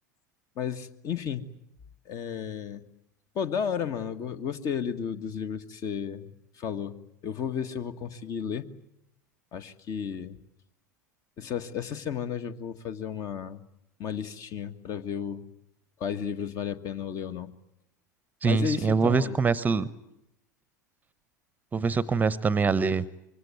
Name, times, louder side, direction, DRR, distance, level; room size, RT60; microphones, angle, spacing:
voice 1, 0.6-1.4 2.0-2.8 3.3-7.0 7.2-8.7 9.5-10.4 11.4-13.6 14.0-15.4 16.0-17.5 18.4-19.4, left 7 dB, 35° left, 9 dB, 1.6 m, -33 dB
voice 2, 18.4-19.9 21.7-23.0, right 5 dB, 15° right, 18 dB, 1.0 m, -24 dB
25.0 x 24.0 x 9.5 m, 0.82 s
figure-of-eight pair, 80°, 10 cm